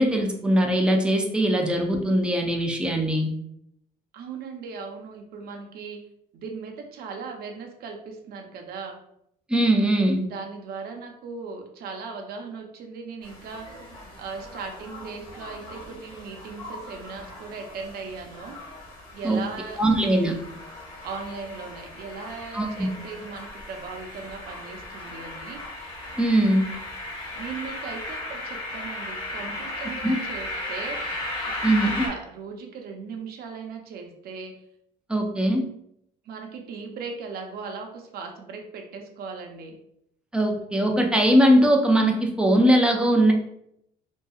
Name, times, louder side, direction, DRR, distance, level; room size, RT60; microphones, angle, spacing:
voice 1, 0.0-3.3 9.5-10.2 19.2-19.4 19.8-20.3 22.5-22.9 26.2-26.6 30.0-30.1 31.6-32.1 35.1-35.6 40.3-43.3, right 1 dB, 5° right, 2 dB, 0.4 m, -20 dB
voice 2, 4.1-6.0 6.3-9.0 10.3-13.8 14.2-18.5 19.1-20.4 21.0-25.6 27.4-31.0 31.4-31.5 31.8-34.5 36.2-39.7, right 5 dB, 65° right, 3 dB, 0.5 m, -38 dB
sound 1, 13.2-32.1, left 1 dB, 30° left, 1.2 m, -37 dB
2.6 x 2.3 x 2.3 m, 0.74 s
cardioid pair, 110°, 17 cm